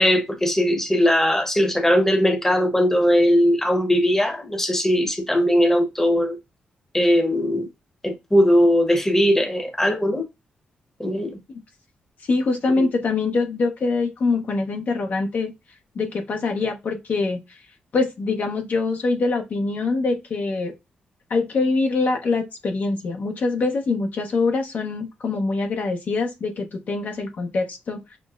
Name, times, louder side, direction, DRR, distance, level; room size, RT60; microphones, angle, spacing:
voice 1, 0.0-6.4 6.9-7.7 8.0-10.2 11.0-11.4 12.8-12.9, equal, 10° left, 0.9 m, -19 dB
voice 2, 12.3-15.5 16.0-17.4 17.9-20.7 21.3-28.0, left 3 dB, 60° left, 0.8 m, -24 dB
5.9 x 2.0 x 2.4 m
cardioid pair, 75°, 3 cm